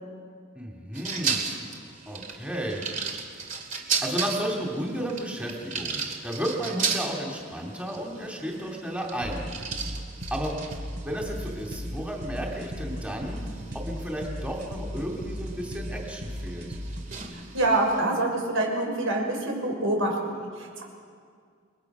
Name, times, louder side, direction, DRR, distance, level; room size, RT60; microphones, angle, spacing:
voice 1, 0.5-1.4 2.1-3.2 4.0-9.5 10.3-10.6 11.0-13.4 13.7-16.7, equal, 5° right, -1 dB, 2.6 m, -33 dB
sound 1, 0.9-18.0, right 5 dB, 40° right, 2.6 m, -36 dB
sound 2, 9.2-17.2, equal, 60° right, 3.9 m, -37 dB
voice 2, 17.3-20.8, right 2 dB, 85° right, 0 dB, 6.0 m, -26 dB
29.5 x 22.0 x 6.1 m, 2.1 s
head